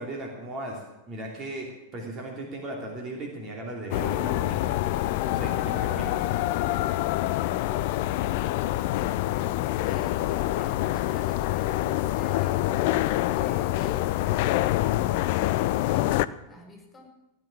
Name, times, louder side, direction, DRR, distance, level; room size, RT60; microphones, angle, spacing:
voice 1, 0.0-4.8 5.2-6.3, right 1 dB, 30° right, -1 dB, 2.9 m, -37 dB
sound 1, 3.9-16.3, left 15 dB, 50° left, 0.5 m, -26 dB
voice 2, 9.3-12.7 13.3-17.1, left 2 dB, 15° left, 1 dB, 4.8 m, -49 dB
15.5 x 9.7 x 7.4 m, 0.98 s
figure-of-eight pair, 90°, 0 cm